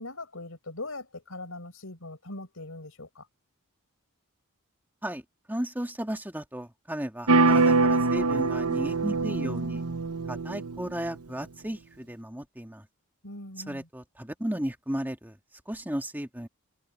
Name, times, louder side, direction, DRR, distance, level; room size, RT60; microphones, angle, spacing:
voice 1, 0.0-3.3 13.2-13.9, left 2 dB, 65° left, 5.1 m, -41 dB
voice 2, 5.5-9.8 10.3-12.8 13.7-15.3 15.7-16.5, equal, 10° right, 2.1 m, -34 dB
sound 1, 7.3-11.1, right 3 dB, 80° right, 0.9 m, -24 dB
head